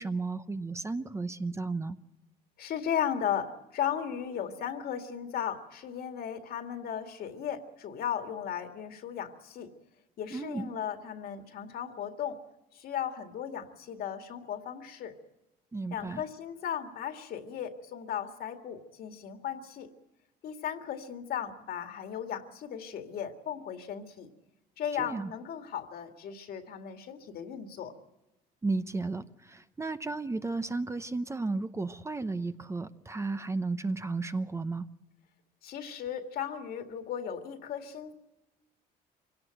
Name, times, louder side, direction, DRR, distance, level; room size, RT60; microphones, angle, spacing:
voice 1, 0.0-2.0 10.3-10.7 15.7-16.2 25.0-25.3 28.6-34.9, right 3 dB, 15° right, 11 dB, 0.7 m, -33 dB
voice 2, 2.6-9.7 10.2-12.4 12.7-15.2 15.9-19.9 20.4-24.3 24.8-27.9 35.6-38.1, left 9 dB, 65° left, 6 dB, 2.1 m, -36 dB
24.5 x 17.5 x 7.8 m, 1.0 s
cardioid pair, 110°, 17 cm